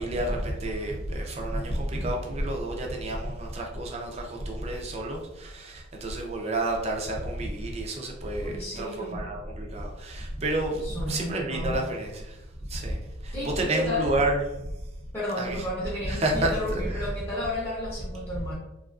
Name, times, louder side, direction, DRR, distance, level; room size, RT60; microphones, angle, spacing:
voice 1, 0.0-12.4 12.7-14.7 15.4-15.6 16.1-17.1, right 1 dB, 30° right, 1 dB, 0.4 m, -30 dB
voice 2, 8.4-9.2 10.8-11.8 13.3-14.1 15.1-18.5, left 1 dB, 10° left, -11 dB, 0.6 m, -32 dB
2.9 x 2.4 x 2.3 m, 0.94 s
head